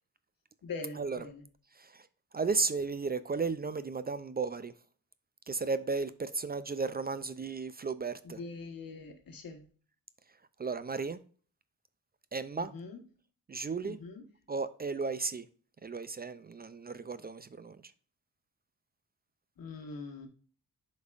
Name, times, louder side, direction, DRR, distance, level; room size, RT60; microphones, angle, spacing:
voice 1, 0.6-1.4 8.2-9.6 12.6-13.0 13.8-14.2 19.6-20.3, left 3 dB, 80° left, 1.4 m, -43 dB
voice 2, 2.3-4.7 5.5-8.4 10.6-11.2 12.3-12.7 13.5-14.0 14.5-15.5 15.8-17.8, right 4 dB, 30° right, 0.4 m, -34 dB
8.0 x 5.3 x 2.5 m
wide cardioid pair, 110°, 34 cm